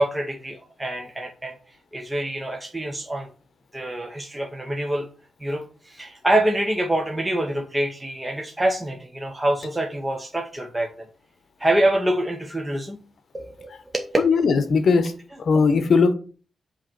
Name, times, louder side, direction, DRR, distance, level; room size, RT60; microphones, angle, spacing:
voice 1, 0.0-1.5 1.9-3.3 3.7-5.1 5.4-10.9 11.6-13.0 13.3-14.1, right 1 dB, 10° right, 0.7 m, -25 dB
voice 2, 14.2-15.1 15.4-16.1, left 4 dB, 60° left, 0.8 m, -18 dB
7.4 x 3.0 x 5.9 m
wide cardioid pair, 160°, 0 cm